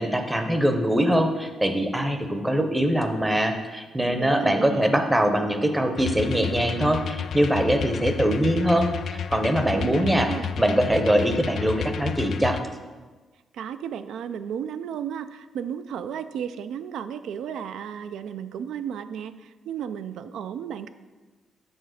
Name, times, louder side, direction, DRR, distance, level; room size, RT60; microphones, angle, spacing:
voice 1, 0.0-10.3 10.6-12.6, equal, 10° right, 6 dB, 0.6 m, -23 dB
voice 2, 4.0-4.9 9.7-10.5 13.5-20.9, right 8 dB, 85° right, 12 dB, 0.4 m, -33 dB
sound 1, 6.0-12.6, left 8 dB, 55° left, 0.3 m, -32 dB
7.9 x 4.2 x 6.3 m, 1.3 s
wide cardioid pair, 160°, 0 cm